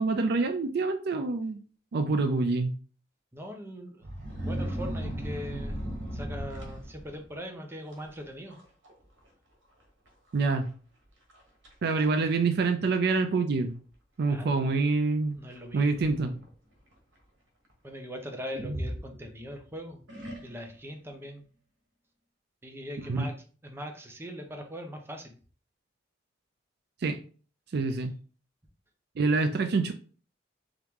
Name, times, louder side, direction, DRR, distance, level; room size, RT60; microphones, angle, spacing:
voice 1, 0.0-1.6 1.9-2.7 10.3-10.7 11.8-13.7 14.2-15.4 15.7-16.3 23.1-23.2 27.0-27.2 27.7-28.1 29.2-29.9, right 3 dB, 60° right, 8 dB, 0.4 m, -26 dB
voice 2, 3.3-4.1 4.4-5.8 6.1-8.6 12.0-12.1 14.3-14.7 15.3-16.1 17.8-20.0 20.4-21.5 22.6-23.3 23.6-25.4, equal, 15° right, 4 dB, 0.7 m, -41 dB
sound 1, 4.0-7.3 7.9-8.2 8.5-8.9 9.2-9.3 10.1-10.2 10.7-10.8 11.3-11.7 12.6-12.7 15.5-16.5 18.5-19.6 20.1-20.8, equal, 90° right, 1.2 m, -36 dB
3.6 x 2.9 x 3.6 m, 0.39 s
head